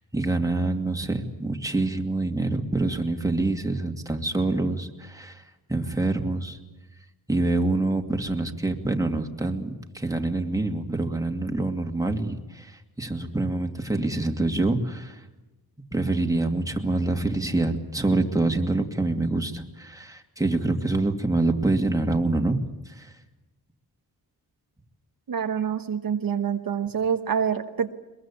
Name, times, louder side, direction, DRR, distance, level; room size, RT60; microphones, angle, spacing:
voice 1, 0.1-5.4 5.7-6.6 7.3-15.2 15.9-22.6 23.0-23.1, right 2 dB, 10° right, 3 dB, 2.5 m, -26 dB
voice 2, 25.3-27.9, right 7 dB, 60° right, 6 dB, 1.3 m, -26 dB
22.5 x 22.0 x 8.6 m, 1.1 s
cardioid pair, 80°, 39 cm